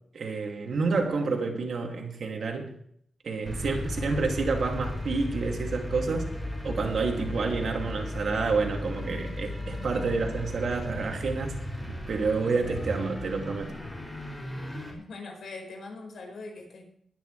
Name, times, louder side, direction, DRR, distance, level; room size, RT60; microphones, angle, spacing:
voice 1, 0.1-2.7 3.2-6.3 6.6-11.6 11.8-13.7, right 4 dB, 60° right, 2 dB, 2.7 m, -29 dB
sound 1, 3.4-14.9, left 1 dB, ahead, 5.1 m, -35 dB
voice 2, 15.0-16.8, left 3 dB, 75° left, 2 dB, 5.1 m, -42 dB
21.0 x 10.5 x 3.4 m, 0.67 s
wide cardioid pair, 150°, 0 cm